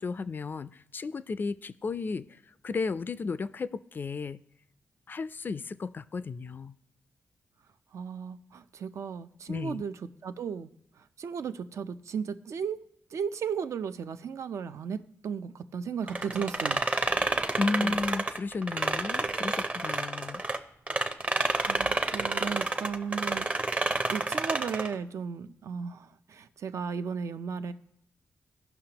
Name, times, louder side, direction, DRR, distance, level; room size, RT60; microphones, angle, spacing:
voice 1, 0.0-2.3 2.6-4.4 5.1-6.7 9.5-9.8 17.6-20.4, left 4 dB, 40° left, 15 dB, 0.3 m, -33 dB
voice 2, 7.9-9.9 10.2-10.7 11.2-12.8 13.1-16.8 17.8-17.9 21.7-23.8 24.1-27.7, right 6 dB, 70° right, 11 dB, 0.5 m, -35 dB
sound 1, 16.1-20.6 20.9-24.9, right 2 dB, 25° right, 0.6 m, -29 dB
17.0 x 5.9 x 2.9 m, 0.72 s
cardioid pair, 95°, 5 cm